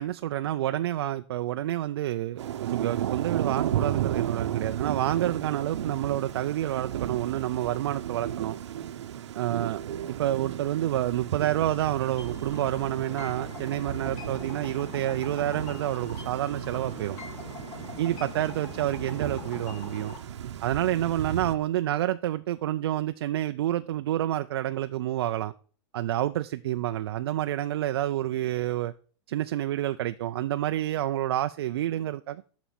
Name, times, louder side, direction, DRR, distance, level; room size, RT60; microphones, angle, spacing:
voice 1, 0.0-8.6 9.3-9.8 10.1-17.2 18.0-20.1 20.6-25.5 25.9-28.9 29.3-32.4, right 13 dB, 60° right, 0.4 m, -28 dB
Thunder / Rain, 2.4-21.6, right 10 dB, 75° right, 0.9 m, -34 dB
sound 1, 12.2-20.2, left 4 dB, 25° left, 1.5 m, -43 dB
7.2 x 6.0 x 7.0 m
supercardioid pair, 175°, 15 cm